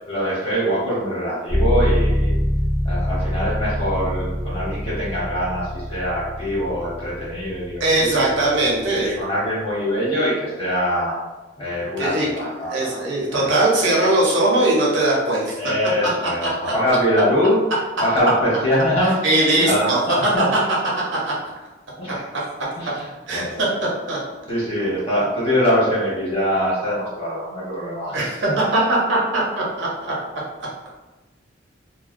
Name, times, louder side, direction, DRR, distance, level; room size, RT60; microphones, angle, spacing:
voice 1, 0.1-2.3 2.8-8.2 9.0-11.1 11.6-13.0 13.3-13.6 15.6-17.6 18.0-19.2 19.5-20.5 22.0-22.3 22.8-23.6 24.5-28.6, equal, 30° left, -8 dB, 1.1 m, -23 dB
sound 1, 1.5-9.2, equal, 15° left, 0.6 m, -25 dB
voice 2, 7.8-9.1 12.0-12.3 12.7-15.5 16.4-16.7 19.2-20.0 21.3-21.4 23.3-23.7 24.1-24.2 28.1-30.1, right 2 dB, 80° right, -4 dB, 0.7 m, -20 dB
2.2 x 2.2 x 2.5 m, 1.1 s
head